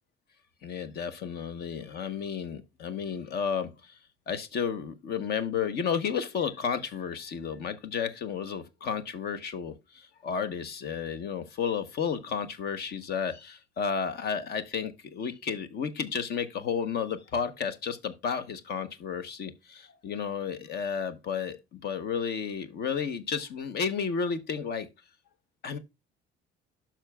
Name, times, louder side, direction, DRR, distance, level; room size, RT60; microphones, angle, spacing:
voice 1, 0.6-3.9 4.3-24.9 25.6-25.8, left 6 dB, 50° left, 0.9 m, -32 dB
12.0 x 5.9 x 2.2 m
cardioid pair, 150°, 21 cm